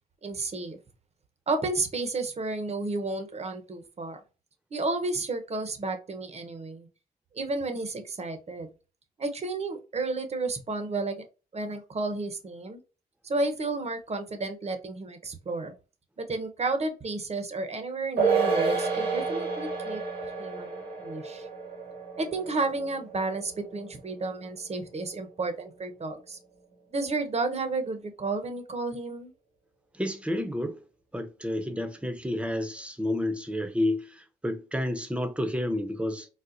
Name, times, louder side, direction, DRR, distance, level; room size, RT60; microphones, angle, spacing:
voice 1, 0.2-0.8 1.5-4.2 4.7-6.9 7.3-8.7 9.2-11.2 11.5-12.8 13.2-15.7 16.2-20.0 20.4-21.5 22.2-26.4 26.9-29.3, right 3 dB, 40° right, 0.8 m, -32 dB
sound 1, 18.2-24.8 25.1-25.2, right 4 dB, 80° right, 1.6 m, -30 dB
voice 2, 29.9-30.8 31.1-36.3, left 1 dB, 5° right, 0.7 m, -30 dB
4.1 x 2.1 x 2.5 m
cardioid pair, 60°, 17 cm